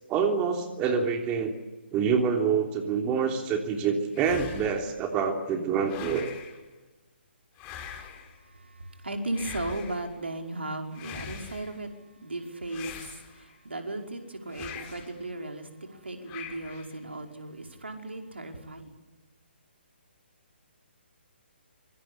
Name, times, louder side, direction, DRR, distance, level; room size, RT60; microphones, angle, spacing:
voice 1, 0.1-1.5 1.9-6.3, right 6 dB, 20° right, 4 dB, 3.2 m, -26 dB
sound 1, 4.1-4.9 5.8-6.6 7.6-8.4 9.3-10.1 10.9-11.8 12.7-13.6 14.5-15.2 16.3-17.0, left 8 dB, 20° left, 4.9 m, -42 dB
voice 2, 8.8-11.9 12.2-12.9 13.4-18.9, right 2 dB, 75° right, 4 dB, 5.3 m, -36 dB
26.5 x 24.5 x 8.5 m, 1.1 s
figure-of-eight pair, 135°, 6 cm